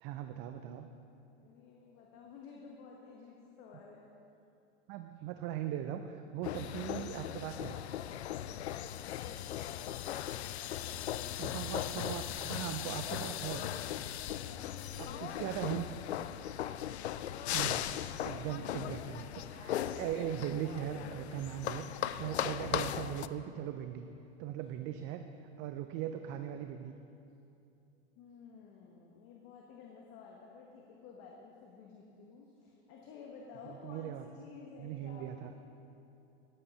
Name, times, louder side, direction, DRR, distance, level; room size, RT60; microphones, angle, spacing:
voice 1, 0.0-0.9 4.9-7.8 11.4-13.7 15.0-15.9 17.4-17.9 18.2-24.1 24.4-25.3 25.6-26.9 33.7-34.3 34.8-35.5, right 10 dB, 35° right, 8 dB, 0.5 m, -39 dB
voice 2, 1.4-4.1 10.0-11.4 14.2-15.6 28.2-35.6, left 5 dB, 45° left, -1 dB, 1.3 m, -53 dB
sound 1, 6.4-23.3, left 11 dB, 80° left, 0.5 m, -38 dB
11.0 x 8.5 x 5.4 m, 2.7 s
hypercardioid pair, 105°, 33 cm